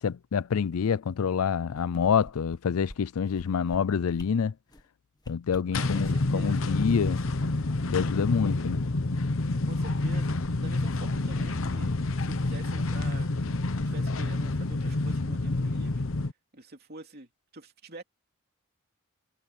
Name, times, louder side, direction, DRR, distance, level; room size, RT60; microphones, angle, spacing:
voice 1, 0.0-4.5 5.3-7.2 7.9-8.8, left 6 dB, 90° left, 0.4 m, -27 dB
sound 1, 1.5-2.6 2.9-3.0 3.3-3.8 4.1-4.3 4.7-4.9 5.2-6.3 6.7-8.3 8.6-8.7, equal, 20° left, 1.7 m, -47 dB
sound 2, 5.7-16.3, left 2 dB, 65° left, 0.9 m, -28 dB
voice 2, 5.7-7.2 9.7-16.0 16.5-18.0, right 2 dB, 50° right, 3.1 m, -47 dB
head